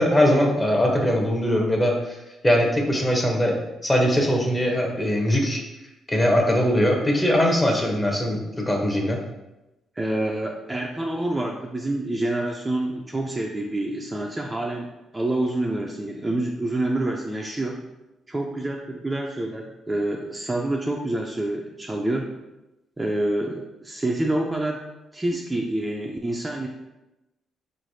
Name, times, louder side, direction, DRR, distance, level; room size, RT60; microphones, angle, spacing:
voice 1, 0.0-2.2 2.4-3.6 3.8-5.6 6.1-9.2, equal, 15° left, 1 dB, 0.8 m, -21 dB
voice 2, 10.0-17.8 18.3-22.3 23.0-24.8 25.1-26.7, right 1 dB, 15° right, 0 dB, 0.4 m, -27 dB
4.1 x 3.2 x 2.7 m, 0.98 s
cardioid pair, 90°, 0 cm